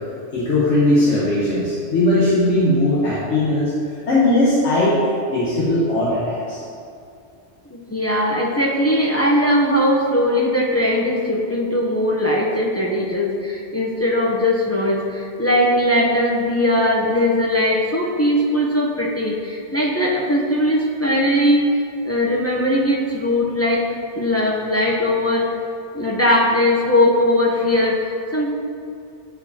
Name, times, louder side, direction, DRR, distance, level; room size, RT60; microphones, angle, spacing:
voice 1, 0.3-3.7 4.1-5.0 5.3-6.6, left 1 dB, 70° left, -8 dB, 1.3 m, -18 dB
voice 2, 7.7-21.7 22.0-23.8 24.1-25.5 25.9-28.5, left 1 dB, 25° left, -3 dB, 0.3 m, -19 dB
9.0 x 4.6 x 2.7 m, 2.5 s
omnidirectional pair, 1.2 m